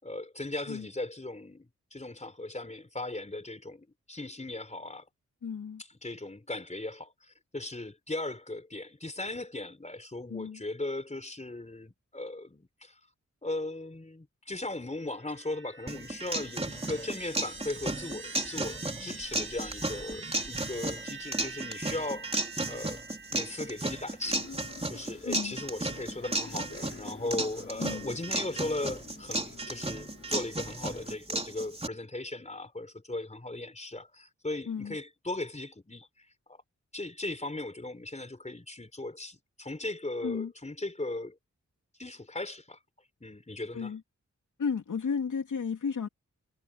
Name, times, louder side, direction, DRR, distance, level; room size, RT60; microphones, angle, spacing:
voice 1, 0.0-5.1 6.0-13.0 13.4-23.0 23.3-24.5 24.9-36.6 36.9-41.4 42.0-42.8 43.2-43.9, left 2 dB, 25° left, 4.4 m, -38 dB
voice 2, 5.4-5.8 10.3-10.6 25.2-25.6 27.8-28.1 34.7-35.0 40.2-40.5 43.7-44.0 44.6-46.1, left 6 dB, 90° left, 3.2 m, -33 dB
sound 1, 15.1-24.4, right 4 dB, 40° right, 2.1 m, -46 dB
sound 2, 15.9-31.9, right 2 dB, 20° right, 3.5 m, -34 dB
sound 3, 24.2-31.2, left 4 dB, 45° left, 3.6 m, -49 dB
cardioid pair, 60°, 29 cm